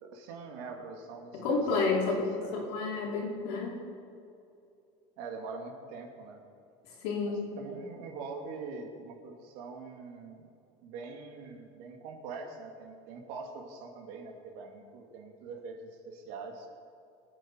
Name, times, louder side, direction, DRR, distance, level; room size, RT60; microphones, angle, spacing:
voice 1, 0.0-1.6 2.0-2.6 5.2-6.4 7.3-10.5 10.8-16.7, right 4 dB, 70° right, 2 dB, 2.6 m, -44 dB
voice 2, 1.3-3.8 7.0-7.5, left 3 dB, 85° left, -3 dB, 4.3 m, -30 dB
23.5 x 8.7 x 4.7 m, 2.6 s
cardioid pair, 135°, 14 cm